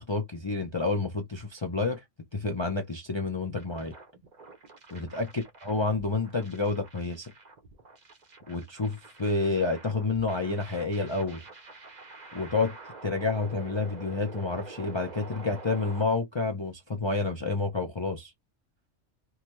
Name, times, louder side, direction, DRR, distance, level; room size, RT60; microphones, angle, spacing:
voice 1, 0.0-2.0 2.3-3.9 4.9-7.3 8.5-11.4 12.3-12.7 13.0-18.3, left 3 dB, 30° left, 0.5 m, -29 dB
sound 1, 3.6-16.0, right 3 dB, 40° right, 0.8 m, -47 dB
3.5 x 2.1 x 3.0 m
omnidirectional pair, 1.3 m